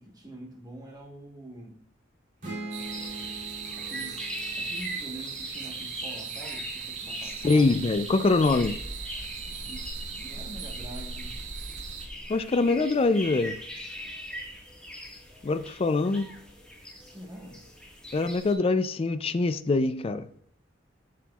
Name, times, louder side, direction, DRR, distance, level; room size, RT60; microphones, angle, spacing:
voice 1, 0.0-1.8 3.6-7.9 9.5-11.4 17.0-17.7, right 1 dB, 20° right, 1.1 m, -45 dB
sound 1, 2.4-6.1, right 2 dB, 65° right, 2.6 m, -42 dB
sound 2, 2.7-12.1, right 8 dB, 80° right, 0.9 m, -39 dB
sound 3, 2.8-18.5, equal, 5° left, 1.5 m, -40 dB
voice 2, 7.4-8.8 12.3-13.6 15.4-16.3 18.1-20.3, left 3 dB, 30° left, 0.4 m, -24 dB
7.4 x 5.9 x 2.3 m
head